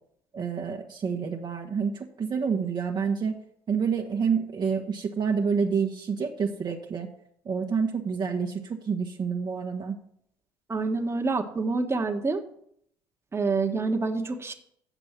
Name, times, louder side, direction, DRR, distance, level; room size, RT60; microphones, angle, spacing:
voice 1, 0.3-7.1 7.4-10.0, right 6 dB, 40° right, 2 dB, 1.3 m, -28 dB
voice 2, 10.7-12.4 13.3-14.5, right 3 dB, 20° right, 3 dB, 1.5 m, -27 dB
8.2 x 6.8 x 7.4 m, 0.69 s
hypercardioid pair, 70°, 12 cm